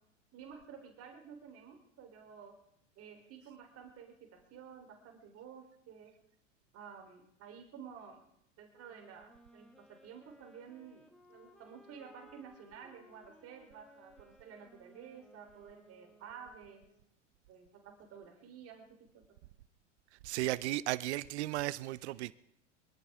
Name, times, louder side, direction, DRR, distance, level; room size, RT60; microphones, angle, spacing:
voice 1, 0.3-2.6 3.0-6.1 6.7-8.2 8.6-16.8 17.5-18.9 19.1-19.2, right 7 dB, 40° right, 3.7 m, -52 dB
Wind instrument woodwind instrument, 8.7-17.0, equal, ahead, 2.2 m, -62 dB
voice 2, 20.2-22.3, right 16 dB, 60° right, 0.7 m, -35 dB
24.0 x 14.0 x 3.6 m
hypercardioid pair, 90°, 37 cm